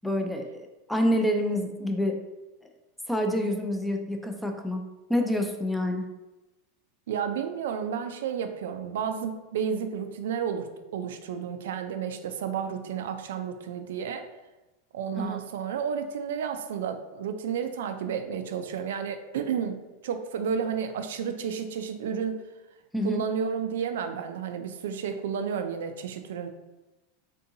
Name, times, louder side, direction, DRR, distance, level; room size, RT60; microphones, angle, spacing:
voice 1, 0.0-2.2 3.1-4.8 5.1-6.1 15.2-15.4 22.9-23.2, left 1 dB, 5° left, 3 dB, 0.4 m, -27 dB
voice 2, 7.1-14.3 14.9-22.4 23.0-26.5, right 7 dB, 80° right, 7 dB, 0.3 m, -31 dB
3.6 x 2.6 x 2.6 m, 1.1 s
supercardioid pair, 120°, 0 cm